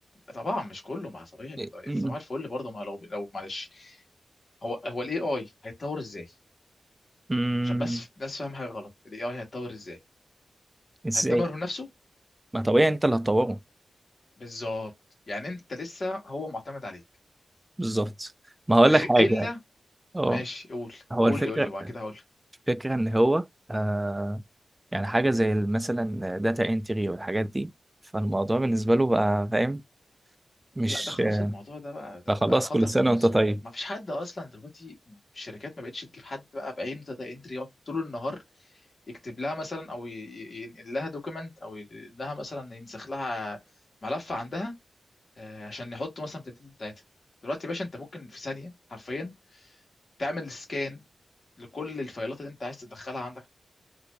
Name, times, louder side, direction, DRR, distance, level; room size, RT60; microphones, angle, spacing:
voice 1, 0.3-4.0 4.6-6.3 7.6-10.0 11.1-11.9 14.4-14.9 15.3-17.0 18.9-19.6 20.3-22.2 30.9-32.8 33.0-33.4 33.7-38.4 39.1-43.6 44.0-44.7 45.4-46.9 47.4-49.7 50.2-51.0 51.6-53.5, left 2 dB, 35° left, 1.5 m, -35 dB
voice 2, 1.6-2.1 7.3-8.0 11.0-11.4 12.5-13.6 17.8-18.3 18.7-19.5 20.1-20.4 21.1-21.7 22.7-24.4 24.9-27.7 28.1-29.8 30.8-31.5 32.3-33.6, right 1 dB, 10° right, 0.3 m, -24 dB
4.2 x 2.7 x 2.6 m
wide cardioid pair, 175°, 0 cm